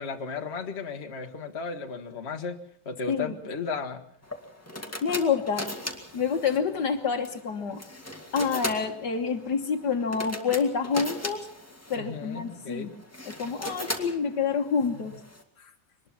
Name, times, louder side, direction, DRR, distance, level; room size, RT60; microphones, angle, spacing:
voice 1, 0.0-2.6 2.8-4.0 11.9-12.9 14.9-15.1, left 5 dB, 35° left, 4 dB, 1.7 m, -35 dB
sound 1, 4.2-15.4, left 1 dB, 10° left, 2.1 m, -39 dB
voice 2, 5.0-5.7 6.1-7.8 8.3-11.5 11.9-12.9 13.3-15.1 15.6-15.7, left 6 dB, 60° left, 5 dB, 1.8 m, -27 dB
23.5 x 20.0 x 5.9 m, 0.62 s
omnidirectional pair, 2.1 m